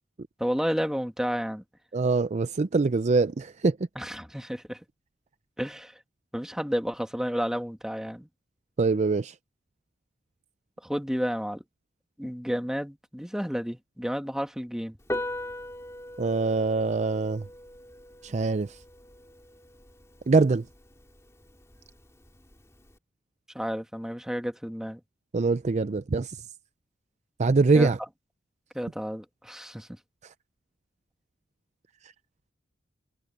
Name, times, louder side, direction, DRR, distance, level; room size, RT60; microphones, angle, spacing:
voice 1, 0.4-1.6 4.0-4.8 5.6-6.0 6.3-8.3 10.8-11.6 12.2-15.0 23.5-25.0 27.7-27.9 28.7-29.9, equal, 5° right, 2.1 m, -31 dB
voice 2, 1.9-3.8 8.8-9.4 16.2-17.5 18.2-18.8 20.3-20.7 25.3-26.5 27.4-28.0 30.2-30.3 32.0-32.1, right 3 dB, 40° right, 0.5 m, -24 dB
Piano, 15.0-23.0, left 1 dB, 15° left, 3.0 m, -41 dB
head